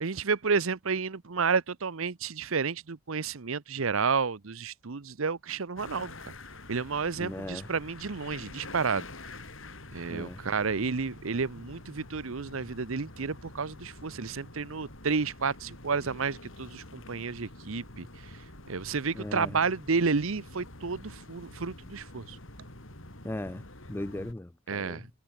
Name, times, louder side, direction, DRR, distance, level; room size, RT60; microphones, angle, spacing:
voice 1, 0.0-6.1 6.7-9.1 9.9-18.4 18.7-22.4 24.7-25.1, right 5 dB, 75° right, 0.8 m, -31 dB
sound 1, 5.8-24.3, left 2 dB, 65° left, 4.4 m, -47 dB
voice 2, 7.2-7.7 10.1-10.4 19.1-19.6 23.2-25.1, left 1 dB, 10° left, 0.4 m, -38 dB
head